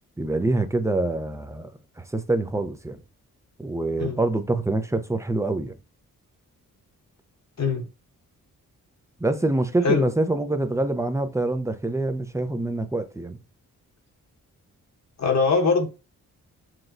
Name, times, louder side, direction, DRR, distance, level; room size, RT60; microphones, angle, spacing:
voice 1, 0.2-1.7 2.0-3.0 3.6-5.7 9.2-13.4, right 2 dB, 10° right, 0.6 m, -25 dB
voice 2, 15.2-15.9, left 4 dB, 45° left, 1.1 m, -22 dB
6.1 x 2.3 x 2.6 m
supercardioid pair, 50°, 38 cm